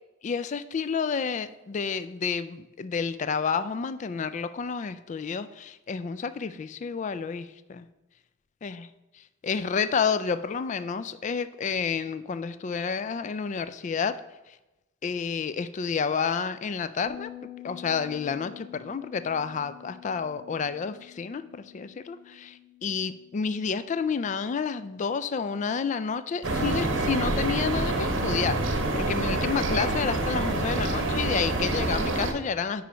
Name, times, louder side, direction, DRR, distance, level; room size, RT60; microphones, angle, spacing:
voice 1, 0.2-7.9 8.6-8.9 9.4-14.2 15.0-17.3 17.6-32.8, left 6 dB, 40° left, 13 dB, 0.3 m, -30 dB
Bass guitar, 17.1-26.4, left 11 dB, 20° left, 1.2 m, -48 dB
sound 1, 26.4-32.3, right 2 dB, 70° right, 0.9 m, -27 dB
9.3 x 3.2 x 5.1 m, 1.0 s
head